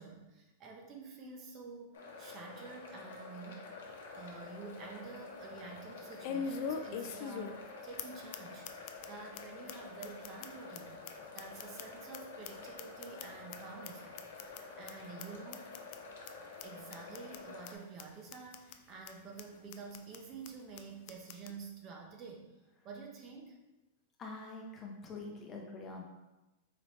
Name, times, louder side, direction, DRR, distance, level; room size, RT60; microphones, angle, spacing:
voice 1, 0.0-3.7 4.1-14.4 14.8-15.7 16.2-16.4 16.6-22.5 22.8-23.6, right 4 dB, 35° right, 1 dB, 0.6 m, -49 dB
sound 1, 1.9-17.7, left 4 dB, 85° left, 0.8 m, -49 dB
sound 2, 3.9-4.0 4.4-4.5 6.2-7.7 8.0-8.1 8.3-8.4 8.6-9.1 9.3-9.4 9.7-9.8 10.0-12.2 12.4-13.6 13.8-13.9 14.2-14.6 14.9-15.0 15.2-15.3 15.5-16.0 16.3-16.4 16.6-16.7 16.9-17.4 17.6-17.7 18.0-18.1 18.3-18.8 19.1-19.2 19.4-19.5 19.7-20.2 20.4-20.5 20.8-20.9 21.1-21.5, left 6 dB, 50° left, 0.3 m, -41 dB
voice 2, 24.2-26.1, left 3 dB, 25° left, 0 dB, 0.7 m, -45 dB
4.0 x 3.2 x 3.0 m, 1.0 s
supercardioid pair, 145°, 0 cm